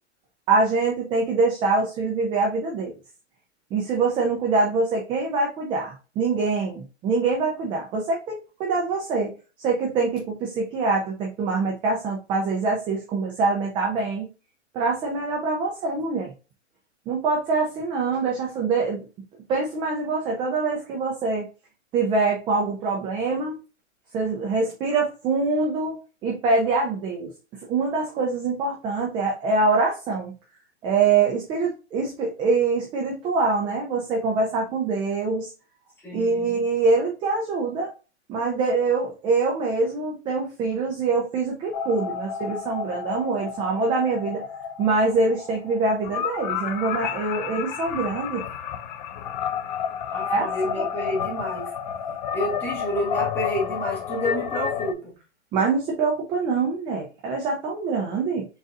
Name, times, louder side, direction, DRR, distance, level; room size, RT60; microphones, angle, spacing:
voice 1, 0.5-2.9 3.7-9.3 9.6-14.3 14.7-16.3 17.1-19.1 19.5-21.5 21.9-23.6 24.1-26.0 26.2-27.3 27.7-30.3 30.8-35.5 36.1-37.9 38.3-44.4 44.8-48.4 50.2-50.5 50.7-50.9 55.5-58.5, right 3 dB, 15° right, 0 dB, 0.5 m, -24 dB
voice 2, 36.0-36.4 50.1-51.7 52.3-55.1, equal, 5° left, -6 dB, 1.9 m, -29 dB
sound 1, 41.7-54.9, left 8 dB, 40° left, 0.4 m, -31 dB
3.9 x 3.8 x 2.5 m, 0.32 s
hypercardioid pair, 140°, 35 cm